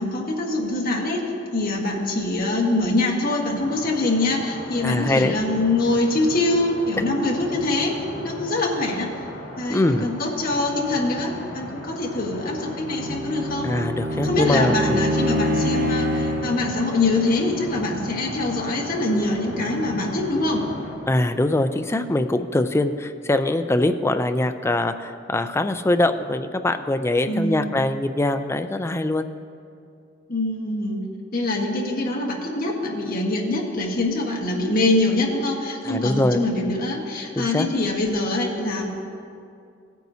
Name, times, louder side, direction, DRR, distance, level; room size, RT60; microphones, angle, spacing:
voice 1, 0.0-9.1 9.6-13.7 14.2-20.7 27.3-27.8 30.3-31.0 31.3-38.9, left 2 dB, 50° left, -1 dB, 1.4 m, -24 dB
sound 1, 3.5-21.0, left 1 dB, 80° left, 3.0 m, -37 dB
voice 2, 4.8-5.4 9.7-10.1 13.6-15.1 21.1-29.3 35.8-36.4 37.4-37.7, left 1 dB, 15° left, 8 dB, 0.4 m, -22 dB
Bowed string instrument, 12.7-16.6, equal, 50° right, 0.8 m, -25 dB
17.0 x 9.1 x 2.8 m, 2.4 s
head